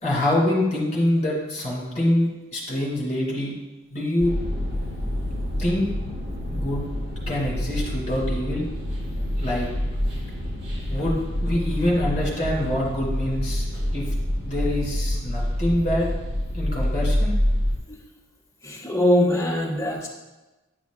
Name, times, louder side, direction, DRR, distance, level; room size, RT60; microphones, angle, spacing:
voice 1, 0.0-3.5 3.9-4.3 5.6-5.9 6.5-6.9 7.3-8.7 9.4-9.7 10.9-13.7 13.9-14.1 14.4-16.1 16.5-17.4, left 1 dB, 35° left, -4 dB, 2.3 m, -25 dB
sound 1, 4.2-17.8, left 1 dB, 60° right, 1.4 m, -27 dB
voice 2, 18.6-20.1, left 1 dB, 15° left, -5 dB, 1.2 m, -22 dB
9.6 x 6.0 x 2.5 m, 1.1 s
head